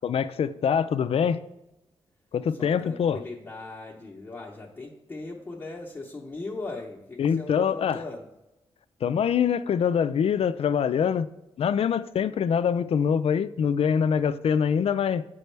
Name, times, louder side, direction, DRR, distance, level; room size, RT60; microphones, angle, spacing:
voice 1, 0.0-1.4 2.3-3.2 7.2-8.0 9.0-11.3 11.6-15.3, left 7 dB, 65° left, 13 dB, 0.4 m, -24 dB
voice 2, 2.6-8.3, left 3 dB, 20° left, -4 dB, 0.9 m, -38 dB
7.9 x 5.3 x 3.3 m, 0.92 s
wide cardioid pair, 110°, 11 cm